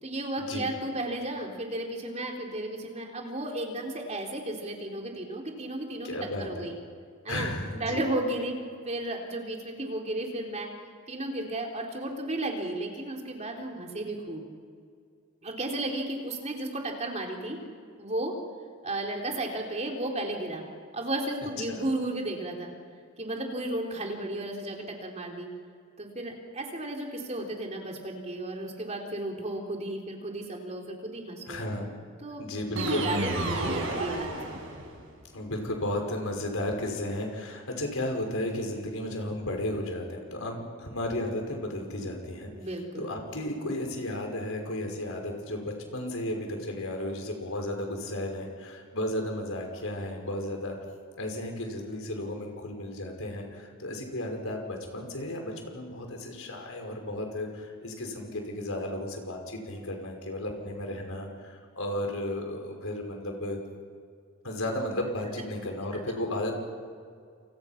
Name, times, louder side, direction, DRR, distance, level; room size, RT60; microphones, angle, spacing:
voice 1, 0.0-6.8 7.2-7.5 7.8-10.7 11.1-14.5 15.4-17.6 18.0-18.3 18.8-20.6 20.9-22.7 23.2-25.5 26.0-31.6 32.2-32.5 32.8-34.6 42.5-43.1, right 1 dB, 30° right, 1 dB, 3.7 m, -34 dB
voice 2, 6.0-6.7 7.3-8.1 21.7-21.8 31.5-31.9 32.4-33.1 33.6-33.7 35.3-42.5 43.0-50.8 51.2-63.6 64.4-66.5, left 1 dB, 75° left, 2 dB, 5.7 m, -34 dB
sound 1, 32.7-35.1, right 2 dB, 65° right, 6.1 m, -31 dB
29.0 x 29.0 x 6.0 m, 2.2 s
head